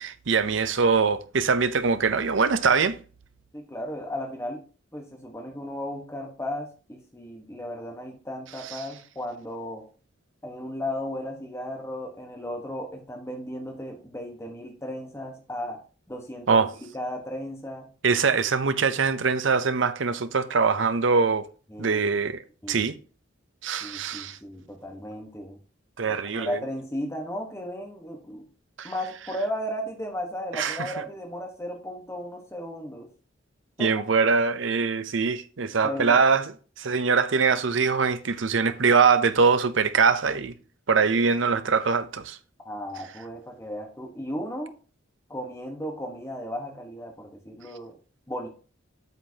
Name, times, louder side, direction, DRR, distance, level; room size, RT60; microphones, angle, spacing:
voice 1, 0.0-3.0 8.7-8.8 16.5-16.7 18.0-21.5 21.8-22.4 22.7-22.9 23.6-24.4 26.0-26.6 28.8-28.9 30.5-31.0 33.8-36.4 36.8-40.5 40.9-42.4, right 5 dB, 70° right, 0.7 m, -23 dB
voice 2, 3.5-4.6 4.9-9.9 10.4-15.8 16.1-16.6 16.9-17.9 21.7-22.0 22.6-22.9 23.8-25.6 26.1-28.4 28.8-33.1 33.8-33.9 35.8-36.2 42.6-44.8 45.3-48.0 48.3-48.5, equal, 15° left, 1.2 m, -35 dB
8.1 x 7.3 x 2.8 m
head